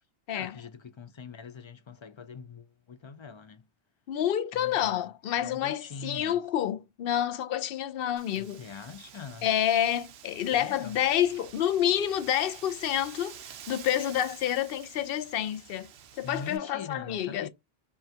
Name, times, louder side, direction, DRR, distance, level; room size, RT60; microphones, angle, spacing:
voice 1, 0.3-3.6 4.5-5.0 5.4-6.4 8.4-9.5 10.5-11.0 16.2-17.5, left 5 dB, 50° left, 0.3 m, -43 dB
voice 2, 4.1-8.6 9.4-13.4 13.7-17.5, left 10 dB, 70° left, 0.7 m, -28 dB
Wind, 8.2-16.6, right 9 dB, 85° right, 0.9 m, -49 dB
5.4 x 2.3 x 2.7 m
omnidirectional pair, 1.0 m